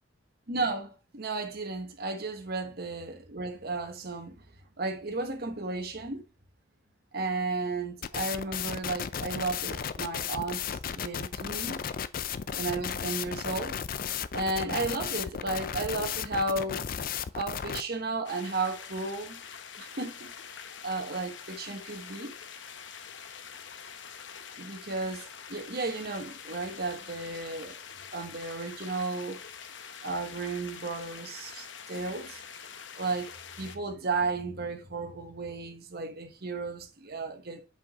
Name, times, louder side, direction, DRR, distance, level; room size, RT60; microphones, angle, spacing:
voice 1, 0.5-4.4 4.8-6.2 7.1-10.6 10.9-11.8 12.5-13.8 14.3-16.9 17.3-19.4 19.8-20.5 20.8-22.3 24.6-27.8 28.1-29.4 30.0-32.5 33.0-37.6, right 3 dB, 50° right, 1.2 m, -34 dB
sound 1, 8.0-17.8, left 8 dB, 45° left, 0.4 m, -34 dB
sound 2, 18.2-33.8, left 7 dB, 65° left, 0.8 m, -45 dB
5.9 x 5.3 x 4.2 m
head